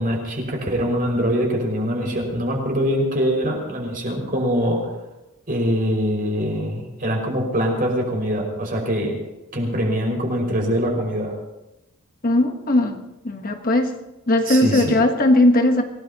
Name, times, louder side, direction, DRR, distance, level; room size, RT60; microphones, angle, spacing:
voice 1, 0.0-4.8 5.5-9.2 9.5-11.3 14.5-14.9, equal, 40° right, 0 dB, 5.7 m, -23 dB
voice 2, 12.2-13.9 14.3-15.8, left 1 dB, 40° left, 5 dB, 1.2 m, -18 dB
27.0 x 18.0 x 3.0 m, 0.94 s
head